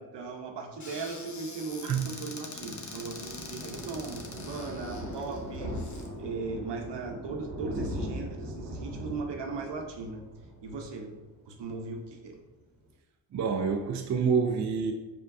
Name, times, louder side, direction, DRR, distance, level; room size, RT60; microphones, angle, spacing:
voice 1, 0.0-10.3 10.6-12.4, right 4 dB, 65° right, 4 dB, 0.9 m, -38 dB
Squeak / Cupboard open or close, 0.8-6.1, left 3 dB, 40° left, 0.9 m, -44 dB
Thunder, 2.3-11.6 12.0-12.2 12.5-12.6 12.8-12.9, equal, 90° right, 1.0 m, -40 dB
voice 2, 13.3-14.9, right 6 dB, 40° right, 3 dB, 0.5 m, -27 dB
4.6 x 3.7 x 2.6 m, 1.2 s
supercardioid pair, 55°, 45 cm